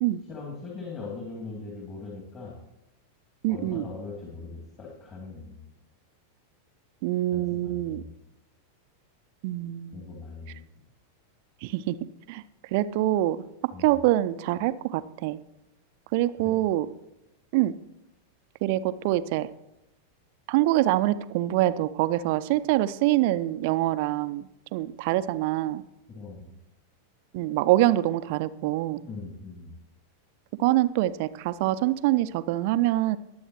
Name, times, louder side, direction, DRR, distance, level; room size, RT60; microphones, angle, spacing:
voice 1, 0.3-2.6 3.5-5.7 7.3-8.1 9.9-10.6 13.7-14.0 16.4-16.6 26.1-26.5 29.0-29.8, left 3 dB, 30° left, -2 dB, 2.7 m, -40 dB
voice 2, 3.4-3.8 7.0-8.0 9.4-10.0 11.6-12.0 12.3-12.4 12.7-13.4 13.8-15.4 16.1-16.9 17.5-17.8 18.6-19.5 20.5-25.8 27.3-29.0 30.6-33.2, right 15 dB, 50° right, 14 dB, 0.5 m, -25 dB
20.5 x 7.9 x 3.0 m, 0.92 s
figure-of-eight pair, 90°, 0 cm